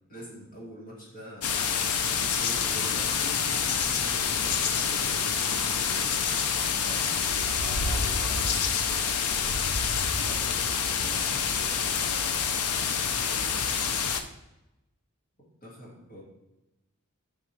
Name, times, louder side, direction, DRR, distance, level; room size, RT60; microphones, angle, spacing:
voice 1, 0.1-1.7 2.1-6.1 6.8-7.1 15.6-16.2, equal, 40° left, -5 dB, 2.2 m, -44 dB
sound 1, 1.4-14.2, left 6 dB, 85° left, 0.6 m, -27 dB
voice 2, 7.6-9.2 10.1-13.3, equal, 15° right, -7 dB, 2.1 m, -48 dB
9.6 x 5.1 x 3.3 m, 0.96 s
head